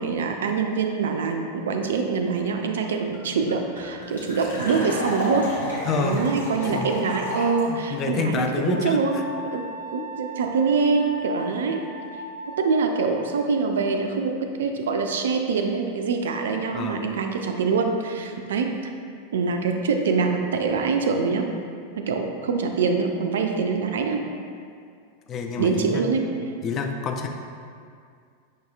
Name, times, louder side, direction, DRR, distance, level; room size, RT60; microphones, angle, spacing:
voice 1, 0.0-5.5 5.9-9.2 9.5-9.6 9.9-11.8 12.5-18.9 19.3-21.5 22.0-24.2 25.6-26.2, right 4 dB, 60° right, 4 dB, 0.3 m, -24 dB
sound 1, 2.8-2.9 3.1-3.2 3.5-7.6, left 1 dB, 80° left, 1.0 m, -31 dB
voice 2, 5.8-6.3 6.6-6.9 7.7-9.0 10.0-10.1 16.7-17.1 25.3-26.0 26.6-27.3, left 4 dB, 30° left, 3 dB, 0.4 m, -28 dB
Wind instrument woodwind instrument, 8.7-13.7, right 2 dB, 55° left, 0.8 m, -38 dB
6.4 x 2.7 x 2.3 m, 2.3 s
figure-of-eight pair, 90°, 0 cm